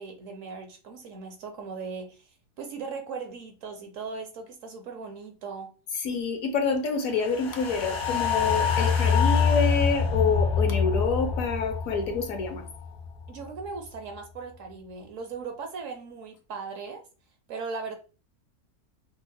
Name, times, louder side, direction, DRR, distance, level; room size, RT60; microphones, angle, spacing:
voice 1, 0.0-2.3 2.6-5.7 13.3-17.0 17.5-18.0, right 4 dB, 65° right, 1.0 m, -38 dB
voice 2, 6.0-12.7, left 5 dB, 65° left, 1.1 m, -27 dB
sound 1, 7.2-13.6 13.9-14.0, left 6 dB, 80° left, 1.7 m, -26 dB
5.3 x 2.1 x 2.6 m
omnidirectional pair, 1.6 m